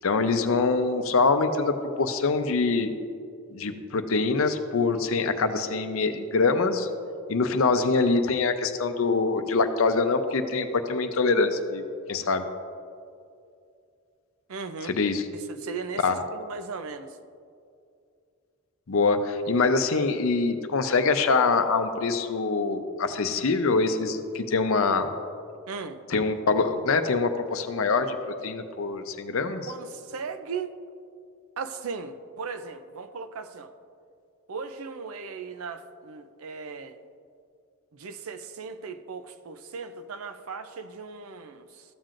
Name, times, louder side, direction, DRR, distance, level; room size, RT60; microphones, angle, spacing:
voice 1, 0.0-2.9 3.5-6.9 7.3-11.8 12.1-12.5 14.8-15.3 16.0-16.2 18.9-25.1 26.1-29.7, left 4 dB, 70° left, 8 dB, 0.6 m, -24 dB
voice 2, 14.5-14.9 15.3-17.1 25.7-26.0 29.7-30.7 31.6-33.7 34.5-37.0 37.9-41.8, right 5 dB, 80° right, 10 dB, 0.5 m, -37 dB
14.0 x 7.4 x 2.5 m, 2.4 s
head